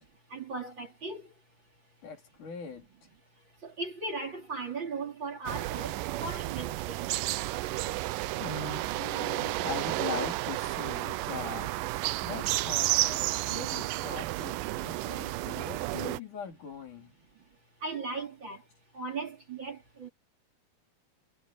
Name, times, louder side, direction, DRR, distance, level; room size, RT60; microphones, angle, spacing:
voice 1, 0.3-1.2 3.6-7.1 17.8-18.6 18.9-20.1, right 3 dB, 35° right, 3.3 m, -37 dB
voice 2, 2.0-2.9 8.4-11.7 12.2-17.1, left 6 dB, 60° left, 5.1 m, -41 dB
sound 1, 5.5-16.2, right 17 dB, 80° right, 2.1 m, -32 dB
omnidirectional pair, 4.1 m